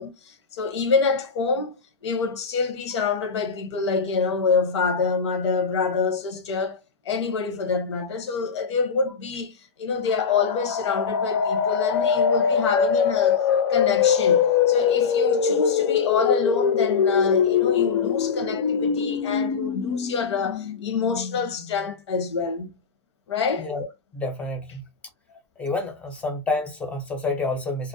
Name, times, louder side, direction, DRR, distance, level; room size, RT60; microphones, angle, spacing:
voice 1, 0.0-1.7 2.0-6.8 7.1-22.7 23.3-23.7, left 5 dB, 85° left, 0.8 m, -26 dB
sound 1, 10.1-21.8, left 7 dB, 55° left, 0.5 m, -23 dB
voice 2, 23.6-23.9 24.1-24.8 25.6-27.9, left 2 dB, 10° left, 0.5 m, -28 dB
2.4 x 2.0 x 2.6 m
supercardioid pair, 155°, 14 cm